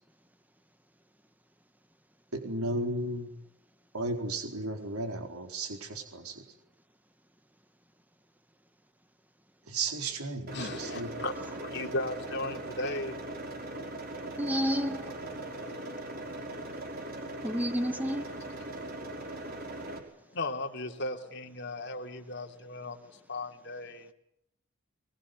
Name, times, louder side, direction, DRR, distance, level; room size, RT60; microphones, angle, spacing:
voice 1, 2.3-3.3 3.9-6.4 9.7-11.1, right 2 dB, 85° right, 4.3 m, -34 dB
voice 2, 10.5-13.1 20.3-24.1, left 2 dB, 50° left, 2.9 m, -36 dB
sound 1, 10.5-20.0, right 1 dB, 45° right, 5.5 m, -40 dB
voice 3, 14.4-15.0 17.4-18.3, equal, 10° right, 1.3 m, -30 dB
24.0 x 22.5 x 9.5 m
head